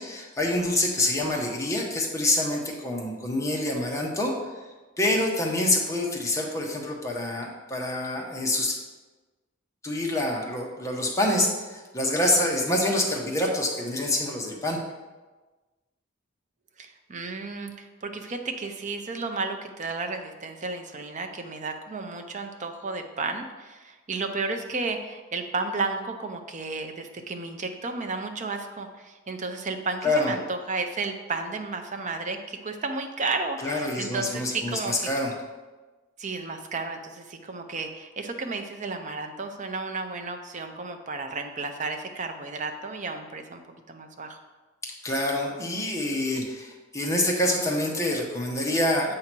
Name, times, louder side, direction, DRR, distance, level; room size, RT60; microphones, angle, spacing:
voice 1, 0.0-4.6 5.0-8.8 9.8-14.8 30.0-30.3 33.6-35.3 45.0-49.1, left 1 dB, 15° left, -1 dB, 1.0 m, -26 dB
voice 2, 16.8-35.1 36.2-44.4, right 3 dB, 40° right, 5 dB, 0.6 m, -33 dB
7.7 x 2.9 x 6.0 m, 1.2 s
head